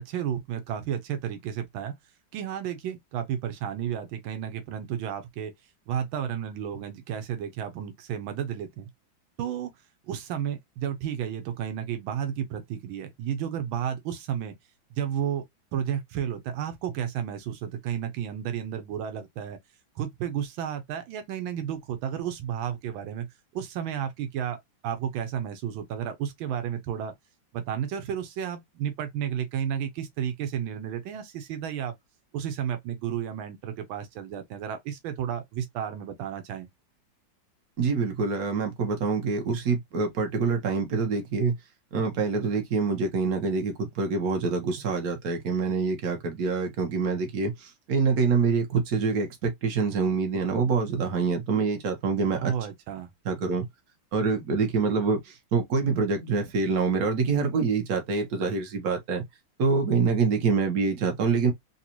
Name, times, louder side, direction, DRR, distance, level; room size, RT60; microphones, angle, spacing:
voice 1, 0.0-1.9 2.3-5.5 5.9-8.9 9.4-9.7 10.1-14.5 15.0-15.4 15.7-19.6 20.0-23.3 23.5-24.6 24.8-27.1 27.5-31.9 32.3-36.7 52.4-53.1, right 9 dB, 90° right, 1.5 m, -32 dB
voice 2, 37.8-41.5 41.9-52.5 53.2-53.7 54.1-59.2 59.6-61.5, right 4 dB, 55° right, 1.4 m, -26 dB
4.0 x 2.3 x 2.9 m
omnidirectional pair, 2.1 m